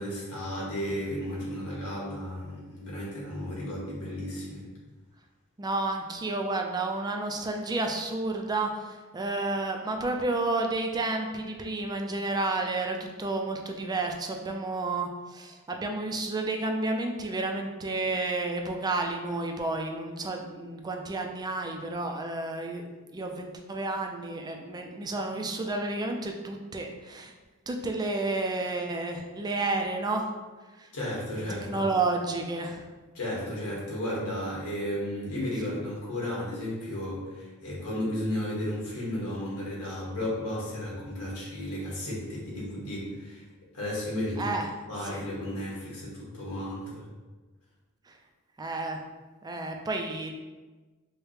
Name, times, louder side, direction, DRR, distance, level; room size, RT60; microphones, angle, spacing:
voice 1, 0.0-4.7 30.9-31.9 33.1-43.4 43.7-44.5 44.9-47.0, left 1 dB, 85° left, -5 dB, 1.4 m, -34 dB
voice 2, 5.6-22.8 23.1-27.3 27.7-30.3 30.8-30.9 31.7-32.9 44.4-44.7 45.0-45.2 48.1-48.2 48.6-49.0 49.4-50.4, right 2 dB, 20° right, 3 dB, 0.3 m, -31 dB
4.8 x 2.1 x 3.1 m, 1.3 s
head